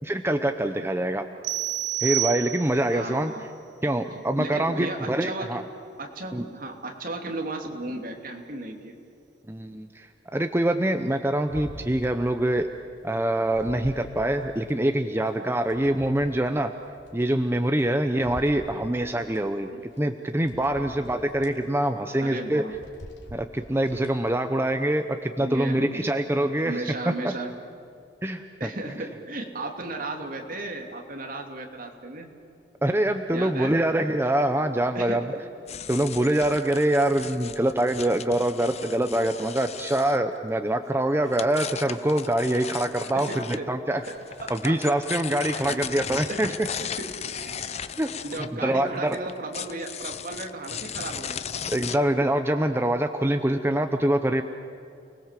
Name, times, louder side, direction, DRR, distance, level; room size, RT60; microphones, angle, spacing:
voice 1, 0.0-1.2 2.0-3.3 3.8-5.6 6.3-6.4 9.5-12.7 13.0-16.7 17.1-19.7 20.0-22.6 23.3-27.3 28.2-28.4 32.8-35.2 35.9-44.0 44.5-46.5 47.9-48.1 48.6-49.2 51.7-54.4, right 1 dB, 15° right, 7 dB, 0.8 m, -24 dB
sound 1, 1.4-3.0, right 15 dB, 80° right, 0.5 m, -29 dB
voice 2, 2.9-3.4 4.1-5.6 6.0-8.9 9.6-9.8 19.7-19.8 20.7-20.9 22.2-22.7 25.4-26.1 26.6-27.5 28.6-32.3 33.3-33.9 34.9-35.2 43.1-43.7 44.1-44.2 44.4-44.7 45.5-45.8 46.3-46.4 47.0-47.7 48.2-51.4, right 2 dB, 50° right, 2 dB, 2.9 m, -35 dB
sound 2, 11.5-12.7 13.1-14.7 15.2-17.8 18.2-19.4 19.9-20.0 20.4-21.6 22.0-22.2 22.6-24.3 24.7-24.8, equal, 90° left, 3.2 m, -45 dB
sound 3, 35.7-40.2 41.3-43.6 44.0-52.0, left 8 dB, 35° left, 0.7 m, -36 dB
30.0 x 20.5 x 7.6 m, 2.6 s
head